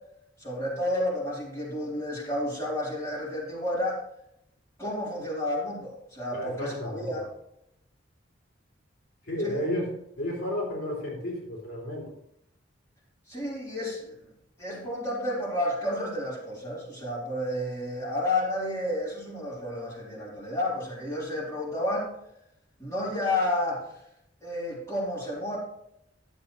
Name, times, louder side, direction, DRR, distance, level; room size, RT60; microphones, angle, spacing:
voice 1, 0.4-4.0 4.8-7.3 9.4-9.6 13.3-14.3 14.6-22.1 22.8-23.9 24.4-25.6, left 1 dB, 15° left, -8 dB, 4.1 m, -31 dB
voice 2, 6.3-7.1 9.2-12.1, left 1 dB, 60° left, -4 dB, 3.1 m, -32 dB
13.0 x 7.4 x 3.3 m, 0.77 s
head